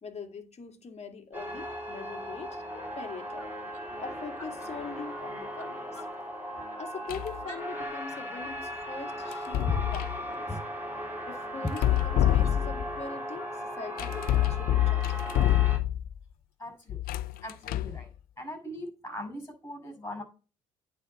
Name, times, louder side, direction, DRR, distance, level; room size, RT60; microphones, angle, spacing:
voice 1, 0.0-3.6 4.0-6.0 6.8-10.6 11.3-15.5, left 4 dB, 40° left, 1.9 m, -42 dB
sound 1, 1.3-15.8, equal, 10° right, 3.9 m, -38 dB
sound 2, 7.1-7.4 9.3-10.2 11.7-13.0 14.0-16.2 16.9-18.0, left 13 dB, 60° left, 0.4 m, -26 dB
voice 2, 16.6-17.0 17.4-18.1 18.4-20.2, left 2 dB, 15° left, 5.5 m, -38 dB
9.4 x 4.3 x 6.9 m
hypercardioid pair, 55°, 17 cm